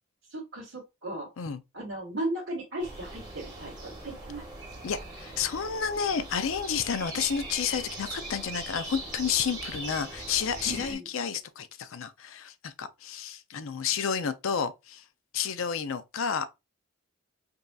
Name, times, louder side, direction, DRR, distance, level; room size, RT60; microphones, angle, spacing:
voice 1, 0.3-1.3 1.7-4.4 10.6-11.1, right 1 dB, 65° right, 1.6 m, -36 dB
sound 1, 2.8-10.9, right 2 dB, 20° right, 1.2 m, -40 dB
voice 2, 4.8-15.0 15.3-16.5, left 7 dB, 70° left, 0.5 m, -31 dB
5.3 x 2.7 x 2.3 m
head